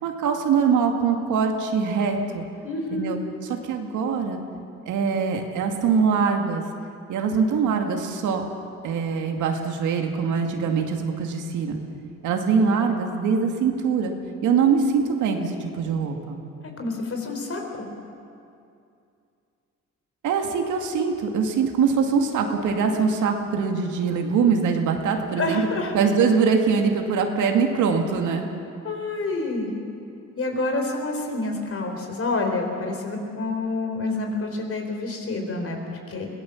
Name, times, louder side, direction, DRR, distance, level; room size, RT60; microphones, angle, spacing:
voice 1, 0.0-2.5 2.9-3.2 3.6-4.4 4.9-6.6 7.1-8.4 8.8-11.8 12.2-14.1 14.4-16.4 20.2-25.7 25.9-28.5, right 5 dB, 85° right, 3 dB, 2.3 m, -23 dB
voice 2, 2.6-3.2 14.6-14.7 16.8-17.9 25.4-25.9 28.8-29.7 30.4-36.3, left 2 dB, 50° left, 3 dB, 4.2 m, -28 dB
22.5 x 17.5 x 7.3 m, 2.5 s
cardioid pair, 90°, 30 cm